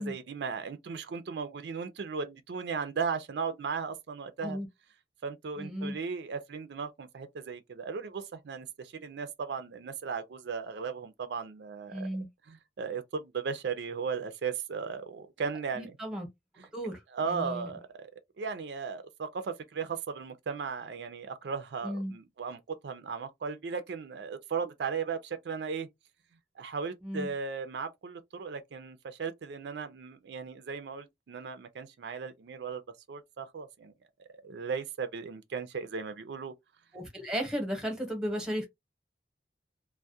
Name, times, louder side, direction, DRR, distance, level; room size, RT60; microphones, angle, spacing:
voice 1, 0.0-4.6 5.2-12.1 12.5-16.0 16.6-16.7 17.1-18.1 18.4-25.9 26.6-32.8 33.1-33.9 34.3-36.5, right 5 dB, 80° right, 0.4 m, -36 dB
voice 2, 5.6-6.0 11.9-12.3 15.8-16.3 16.7-17.0 17.3-17.7 21.8-22.1 27.0-27.3 36.9-38.6, equal, 5° right, 0.8 m, -34 dB
2.3 x 2.1 x 2.6 m
head